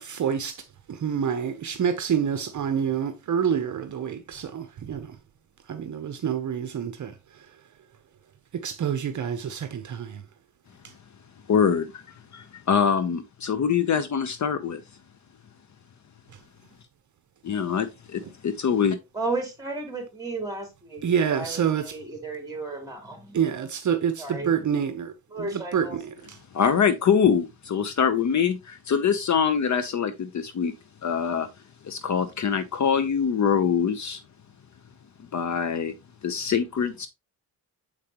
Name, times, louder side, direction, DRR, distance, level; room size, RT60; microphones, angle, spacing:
voice 1, 0.0-5.2 5.7-7.4 8.5-10.2 21.0-21.9 23.3-26.4, right 8 dB, 50° right, 0.8 m, -27 dB
voice 2, 11.5-12.0 12.3-14.8 17.4-19.0 26.5-30.7 31.0-31.5 31.8-34.2 35.3-35.9 36.2-37.1, left 7 dB, 45° left, 0.8 m, -24 dB
voice 3, 19.1-23.4 24.2-24.6 25.3-26.0, right 3 dB, 10° right, 3.1 m, -34 dB
7.4 x 5.0 x 2.9 m
cardioid pair, 110°, 39 cm